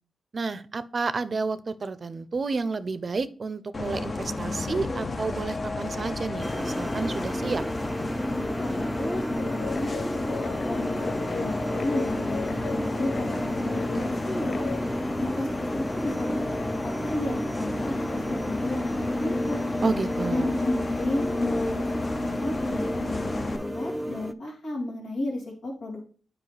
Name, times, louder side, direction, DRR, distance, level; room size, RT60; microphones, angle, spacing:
voice 1, 0.3-7.6 19.8-20.5, right 4 dB, 50° right, 14 dB, 0.5 m, -30 dB
Bus, 3.7-23.6, left 2 dB, 45° left, 0.7 m, -32 dB
sound 1, 6.4-24.3, equal, 5° left, 0.5 m, -32 dB
voice 2, 8.3-14.7 15.2-19.6 20.3-26.0, left 2 dB, 90° left, -3 dB, 2.4 m, -33 dB
Guitar, 9.4-14.8, left 6 dB, 70° left, 0.3 m, -37 dB
8.6 x 4.8 x 3.3 m, 0.41 s
cardioid pair, 50°, 0 cm